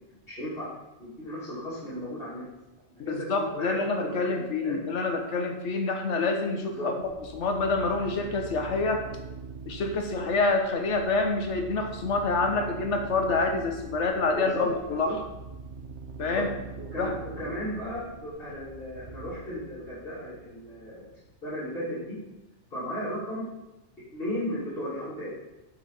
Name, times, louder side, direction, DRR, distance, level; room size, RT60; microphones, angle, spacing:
voice 1, 0.1-0.7 1.0-2.4 3.0-4.8 6.7-6.9 14.3-15.1 16.2-16.4 16.8-21.0 21.4-22.2 22.7-23.4 24.1-25.3, equal, 55° left, -10 dB, 3.1 m, -35 dB
voice 2, 3.0-6.9 7.3-9.1 9.7-15.2 16.2-16.5 17.0-17.2, left 3 dB, 85° left, 4 dB, 1.4 m, -27 dB
sound 1, 7.0-21.3, right 4 dB, 80° right, 1.4 m, -44 dB
7.6 x 5.7 x 5.4 m, 0.99 s
omnidirectional pair, 1.2 m